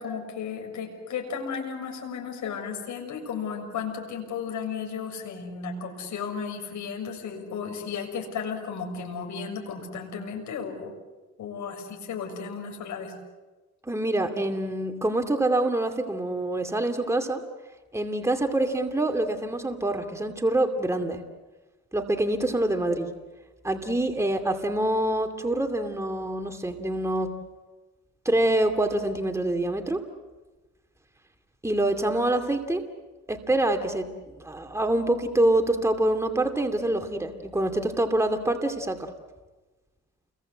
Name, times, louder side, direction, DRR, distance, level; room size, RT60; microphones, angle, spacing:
voice 1, 0.0-10.9 11.4-13.2, left 6 dB, 70° left, 2 dB, 6.8 m, -34 dB
voice 2, 13.9-17.4 17.9-21.2 21.9-23.1 23.6-27.3 28.2-30.0 31.6-32.8 33.3-34.1 34.4-39.1, right 1 dB, 10° right, 5 dB, 2.5 m, -25 dB
29.5 x 23.0 x 8.0 m, 1.2 s
cardioid pair, 90°, 30 cm